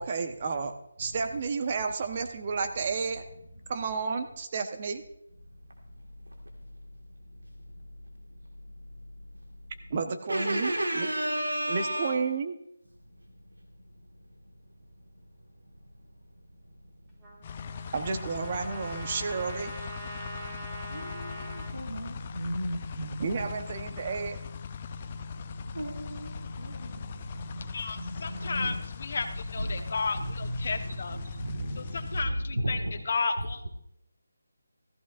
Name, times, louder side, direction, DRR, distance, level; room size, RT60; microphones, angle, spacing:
voice 1, 0.0-3.2 3.7-5.0 9.9-11.1 11.7-12.5 17.9-19.7 23.2-24.4, right 5 dB, 35° right, 7 dB, 1.1 m, -31 dB
voice 2, 10.3-12.2 20.9-23.5 24.9-28.8 29.6-29.9 30.1-32.2 32.5-33.0, right 1 dB, 90° right, 0 dB, 1.9 m, -34 dB
Trumpet, 17.2-21.7, right 1 dB, 15° right, 2.5 m, -43 dB
sound 1, 17.4-32.3, left 6 dB, 30° left, 0.5 m, -41 dB
voice 3, 27.7-31.2 31.8-32.8 33.0-33.7, left 4 dB, 50° left, 6 dB, 1.2 m, -33 dB
14.5 x 14.0 x 2.6 m, 0.81 s
figure-of-eight pair, 160°, 0 cm